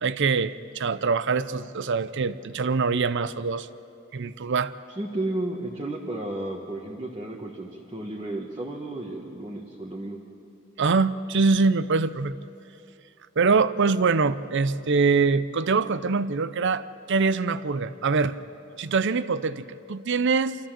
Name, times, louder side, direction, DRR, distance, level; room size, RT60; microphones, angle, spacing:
voice 1, 0.0-3.7 4.1-4.7 10.8-12.4 13.4-18.4 18.8-20.6, right 4 dB, 60° right, 15 dB, 0.6 m, -24 dB
voice 2, 5.0-10.2, right 2 dB, 25° right, -2 dB, 1.4 m, -33 dB
26.5 x 14.0 x 7.5 m, 2.6 s
head